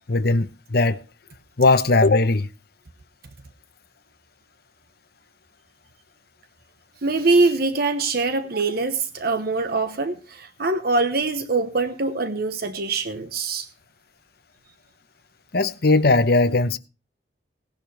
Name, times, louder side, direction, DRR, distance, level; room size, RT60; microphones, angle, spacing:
voice 1, 0.1-1.0 1.6-2.5 15.5-16.8, left 3 dB, 55° left, 0.9 m, -18 dB
voice 2, 7.0-13.7, right 3 dB, 55° right, 1.0 m, -23 dB
18.0 x 11.0 x 3.3 m
head